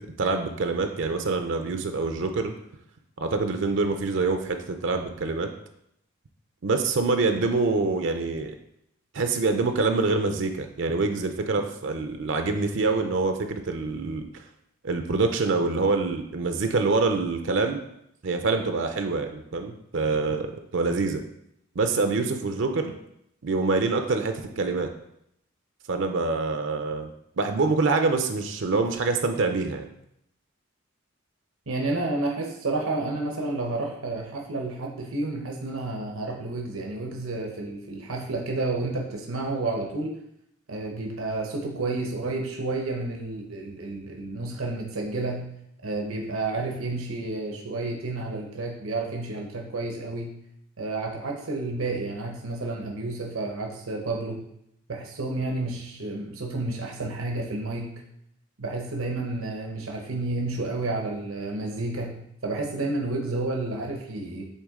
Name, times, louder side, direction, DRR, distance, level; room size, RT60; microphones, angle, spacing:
voice 1, 0.0-2.5 3.2-5.5 6.6-8.5 9.1-14.2 14.8-17.8 18.2-20.5 20.7-21.2 21.8-22.9 23.4-24.9 25.9-27.1 27.4-29.9, right 3 dB, 60° right, 6 dB, 0.5 m, -25 dB
voice 2, 31.7-40.1 40.7-45.5 45.8-50.3 50.8-54.4 54.9-57.9 58.6-64.5, right 2 dB, 85° right, 1 dB, 0.9 m, -30 dB
8.2 x 3.5 x 3.6 m, 0.76 s
head